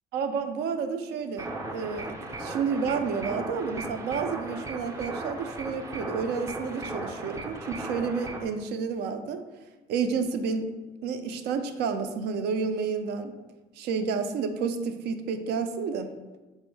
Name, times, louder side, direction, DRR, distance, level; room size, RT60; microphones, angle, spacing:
voice 1, 0.1-9.4 9.9-10.7 11.0-13.3 13.8-16.1, right 5 dB, 75° right, 8 dB, 0.4 m, -30 dB
sound 1, 1.4-8.4, right 2 dB, 20° right, 0.5 m, -37 dB
4.4 x 2.0 x 4.5 m, 1.2 s
cardioid pair, 110°, 17 cm